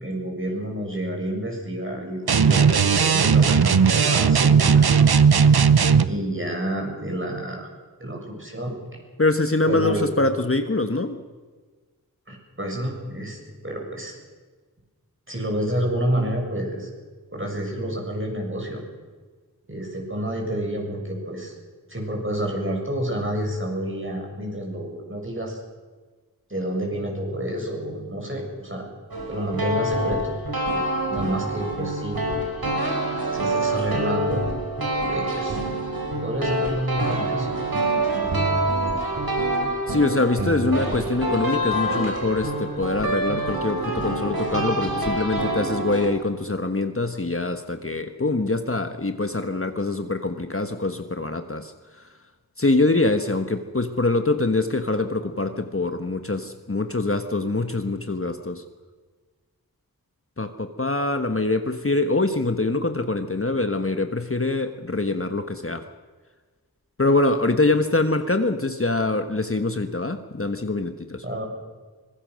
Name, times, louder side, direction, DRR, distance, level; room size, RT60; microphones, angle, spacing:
voice 1, 0.0-4.9 5.5-5.7 6.1-7.7 8.0-8.8 9.7-10.0 12.3-14.1 15.3-16.9 17.3-18.8 19.7-21.5 21.9-25.6 26.5-28.9 29.3-30.4 31.1-32.2 33.3-34.4 35.1-35.6 36.2-37.6 71.2-71.5, right 1 dB, 35° right, 0 dB, 7.2 m, -29 dB
sound 1, 2.3-6.1, right 6 dB, 90° right, 0.8 m, -17 dB
voice 2, 9.2-11.2 39.9-52.1 52.6-58.6 60.4-65.8 67.0-71.2, left 2 dB, 35° left, 7 dB, 1.3 m, -24 dB
sound 2, 29.1-46.1, right 1 dB, 70° right, 4.6 m, -26 dB
24.5 x 21.5 x 6.4 m, 1.4 s
wide cardioid pair, 55°, 37 cm